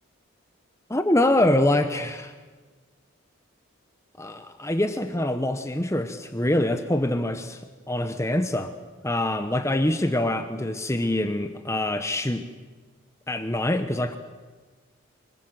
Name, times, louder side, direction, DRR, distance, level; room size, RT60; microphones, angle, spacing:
voice 1, 0.9-2.3 4.2-8.7 9.0-12.5 13.3-14.2, left 1 dB, 15° left, 8 dB, 0.9 m, -25 dB
25.0 x 23.0 x 7.7 m, 1.4 s
head